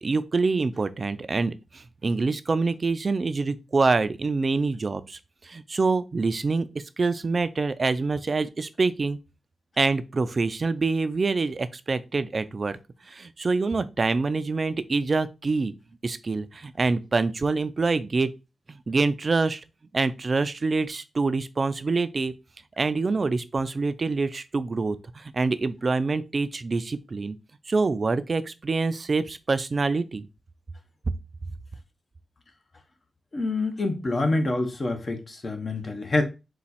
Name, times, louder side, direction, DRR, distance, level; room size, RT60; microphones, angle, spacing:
voice 1, 0.0-6.7 7.0-9.2 9.8-12.8 13.1-15.7 16.0-18.3 18.7-19.6 19.9-22.3 22.8-27.4 27.7-30.3, right 3 dB, 50° right, 0.4 m, -26 dB
voice 2, 33.3-36.2, left 2 dB, 45° left, 0.9 m, -26 dB
4.2 x 2.3 x 4.1 m
cardioid pair, 60°, 0 cm